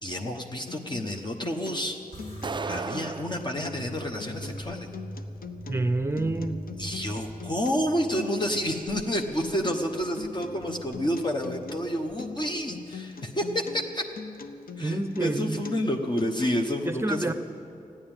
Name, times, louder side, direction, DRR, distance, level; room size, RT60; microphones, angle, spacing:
voice 1, 0.0-2.0 2.7-4.9 6.8-14.0 14.8-17.3, equal, 30° left, 2 dB, 1.0 m, -29 dB
Acoustic guitar, 0.7-16.7, left 5 dB, 80° left, 0.7 m, -42 dB
sound 1, 2.1-12.7, right 1 dB, 60° left, 3.6 m, -43 dB
sound 2, 2.4-3.4, right 4 dB, 35° right, 0.4 m, -34 dB
voice 2, 5.7-6.7 14.8-15.6 16.9-17.3, right 2 dB, 15° right, 10 dB, 0.7 m, -28 dB
15.0 x 10.0 x 8.9 m, 2.6 s
wide cardioid pair, 90°, 15 cm